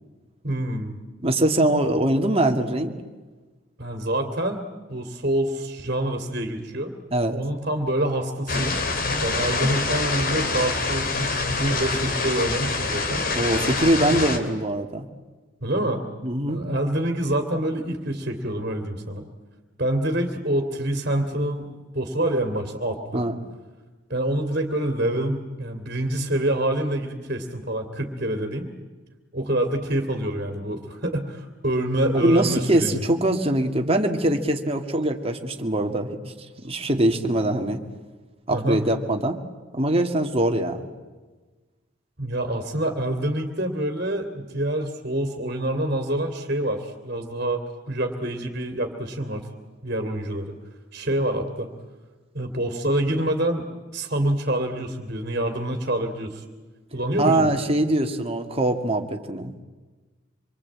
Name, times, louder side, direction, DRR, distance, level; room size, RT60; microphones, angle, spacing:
voice 1, 0.4-1.0 3.8-4.6 4.9-6.9 7.3-8.8 9.2-13.2 15.6-16.0 16.5-19.2 19.8-23.2 24.1-28.7 29.3-33.0 38.5-38.8 42.2-49.5 49.8-50.5 50.9-51.7 52.3-53.7 53.9-56.4 56.9-57.6, right 1 dB, 50° right, 5 dB, 2.8 m, -26 dB
voice 2, 1.2-3.0 7.1-7.4 13.3-15.1 16.2-16.6 23.1-23.4 32.2-36.3 36.6-37.8 38.5-39.4 39.7-40.9 57.2-59.5, right 1 dB, 30° right, 4 dB, 2.1 m, -22 dB
sound 1, 8.5-14.4, left 3 dB, 50° left, 2.7 m, -25 dB
26.5 x 23.5 x 8.6 m, 1.3 s
head